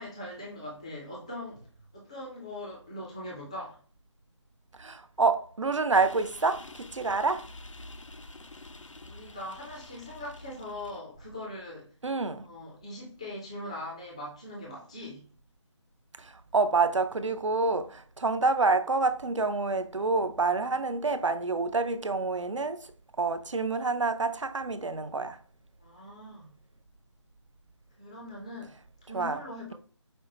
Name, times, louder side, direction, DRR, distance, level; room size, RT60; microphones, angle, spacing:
voice 1, 0.0-3.8 9.0-11.9 12.4-15.3 25.8-26.5 28.0-28.7 29.0-29.7, left 1 dB, 10° left, 0.4 m, -41 dB
voice 2, 4.8-7.5 12.0-12.5 16.2-22.9 23.2-25.4 29.1-29.4, right 3 dB, 75° right, 0.5 m, -27 dB
sound 1, 5.9-11.0, left 2 dB, 80° left, 0.5 m, -48 dB
5.1 x 2.1 x 2.8 m
figure-of-eight pair, 155°, 16 cm